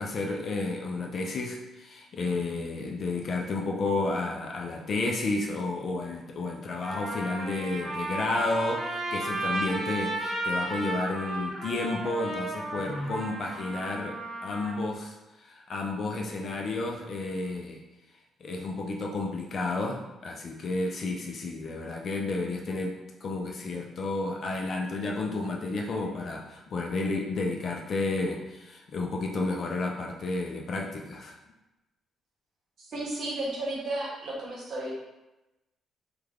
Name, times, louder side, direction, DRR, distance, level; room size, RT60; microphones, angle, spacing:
voice 1, 0.0-17.8 18.4-31.4, left 2 dB, 40° left, 1 dB, 0.4 m, -31 dB
Trumpet, 6.1-6.2 6.8-14.8, right 2 dB, 20° right, 0.8 m, -34 dB
voice 2, 32.8-34.9, right 1 dB, 45° right, -4 dB, 0.9 m, -33 dB
3.2 x 2.3 x 3.4 m, 0.98 s
cardioid pair, 170°, 0 cm